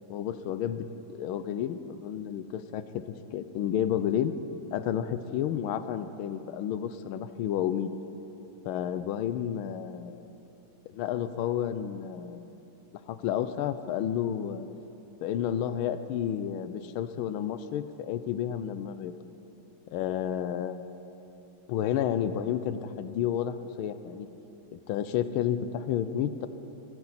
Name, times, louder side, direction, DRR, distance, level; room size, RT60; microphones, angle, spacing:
voice 1, 0.1-2.8 3.3-4.3 4.7-7.9 8.6-10.3 10.9-12.5 13.1-14.7 15.2-19.1 19.9-20.8 21.7-24.3 24.7-26.5, left 10 dB, 85° left, 12 dB, 1.5 m, -31 dB
25.5 x 12.5 x 4.2 m, 2.9 s
omnidirectional pair, 2.3 m